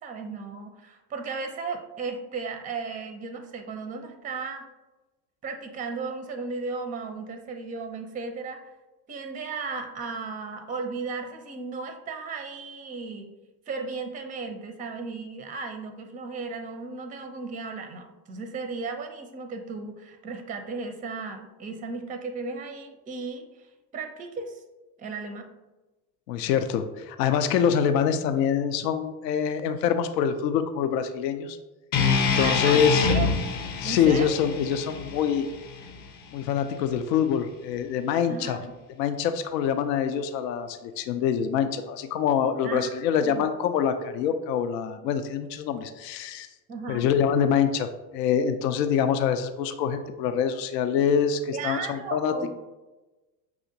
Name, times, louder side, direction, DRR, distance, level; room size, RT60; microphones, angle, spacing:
voice 1, 0.0-4.6 5.4-8.6 9.1-13.3 13.7-24.6 25.0-25.5 32.4-33.3 33.8-34.4 38.3-38.8 42.6-43.5 46.7-47.1 51.5-52.5, right 4 dB, 15° right, 7 dB, 0.4 m, -35 dB
voice 2, 26.3-31.6 32.2-33.1 33.8-35.5 36.3-38.6 39.0-46.5 46.9-47.9 48.1-52.5, left 8 dB, 75° left, 8 dB, 0.5 m, -25 dB
sound 1, 31.9-36.1, left 5 dB, 40° left, 0.7 m, -26 dB
5.9 x 2.7 x 2.6 m, 1.1 s
hypercardioid pair, 75°, 50 cm